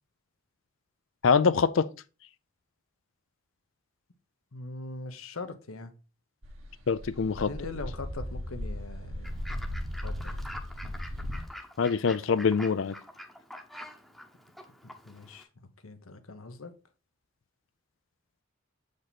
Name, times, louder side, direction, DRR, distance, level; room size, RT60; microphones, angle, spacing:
voice 1, 1.2-1.9 6.9-7.5 11.8-12.9, left 5 dB, 65° left, 0.4 m, -24 dB
voice 2, 4.5-5.9 7.3-9.4 10.0-10.4 14.8-15.5 15.8-16.7, left 3 dB, 85° left, 1.0 m, -41 dB
sound 1, 6.4-11.5, equal, 70° right, 1.6 m, -37 dB
Fowl / Bird, 9.2-15.4, left 1 dB, ahead, 0.9 m, -46 dB
7.4 x 5.1 x 4.1 m
head